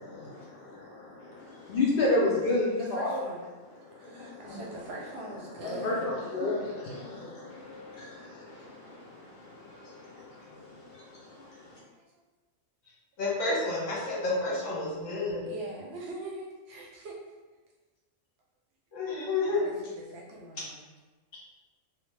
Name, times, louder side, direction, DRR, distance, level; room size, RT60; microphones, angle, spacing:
voice 1, 0.0-3.2 3.8-4.6 5.6-11.8, left 2 dB, 60° left, -6 dB, 0.6 m, -32 dB
voice 2, 2.8-3.4 3.9-6.0 8.9-9.0 11.9-12.0 15.5-17.2 19.5-20.8, right 2 dB, 65° right, -2 dB, 0.7 m, -42 dB
voice 3, 13.2-15.4 18.9-19.7, left 2 dB, 75° left, -5 dB, 1.2 m, -30 dB
2.7 x 2.0 x 3.1 m, 1.3 s
omnidirectional pair, 1.3 m